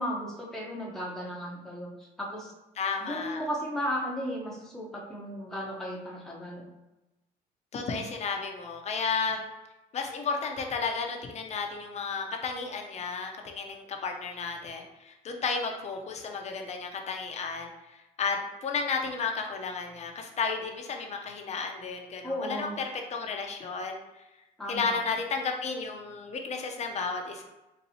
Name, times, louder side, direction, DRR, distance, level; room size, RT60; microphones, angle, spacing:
voice 1, 0.0-1.9 2.2-2.5 3.0-6.6 22.2-22.8 24.6-25.0, equal, 5° left, -4 dB, 0.7 m, -35 dB
voice 2, 2.7-3.4 7.7-9.5 9.9-24.2 24.7-27.4, left 5 dB, 40° left, 3 dB, 0.6 m, -33 dB
4.1 x 2.6 x 2.7 m, 1.0 s
cardioid pair, 110°, 17 cm